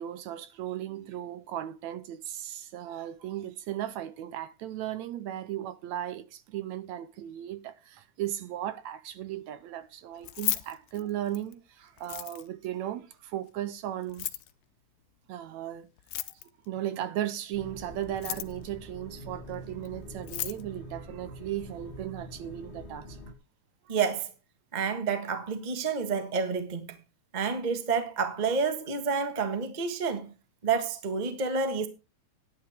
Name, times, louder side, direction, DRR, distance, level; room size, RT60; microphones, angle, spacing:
voice 1, 0.0-14.3 15.3-15.9 16.2-16.3 16.7-23.2, right 12 dB, 75° right, 1.9 m, -36 dB
Keys jangling, 10.2-11.5 12.0-12.7 14.0-14.5 16.0-16.7 18.0-18.7 19.9-20.0 20.2-20.6, left 16 dB, 80° left, 2.2 m, -34 dB
sound 1, 17.5-23.3, equal, 30° left, 1.3 m, -45 dB
voice 2, 23.9-24.3 24.7-27.0 27.3-30.3 30.6-31.9, right 5 dB, 55° right, 0.4 m, -29 dB
12.5 x 10.5 x 3.5 m
omnidirectional pair, 3.7 m